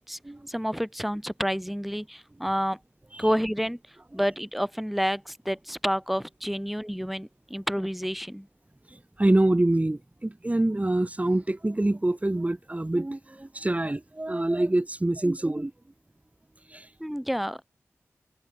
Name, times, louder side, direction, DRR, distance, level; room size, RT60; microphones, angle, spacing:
voice 1, 0.5-2.8 3.2-8.5 17.0-17.6, equal, ahead, 7.5 m, -29 dB
voice 2, 8.9-15.7 16.7-16.9, right 1 dB, 25° right, 3.4 m, -26 dB
cardioid pair, 40°, 6 cm